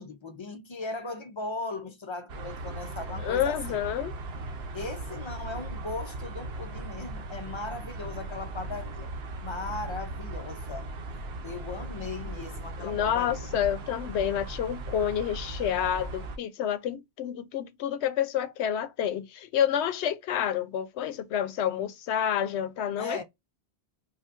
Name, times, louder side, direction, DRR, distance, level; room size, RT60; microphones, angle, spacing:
voice 1, 0.0-3.8 4.7-9.1 9.4-10.9 11.4-13.5 23.0-23.2, left 3 dB, 45° left, 0.3 m, -38 dB
sound 1, 2.3-16.4, right 2 dB, 70° right, 0.9 m, -38 dB
voice 2, 3.2-4.1 12.8-23.2, left 9 dB, 90° left, 0.9 m, -29 dB
5.1 x 2.2 x 2.4 m
omnidirectional pair, 1.1 m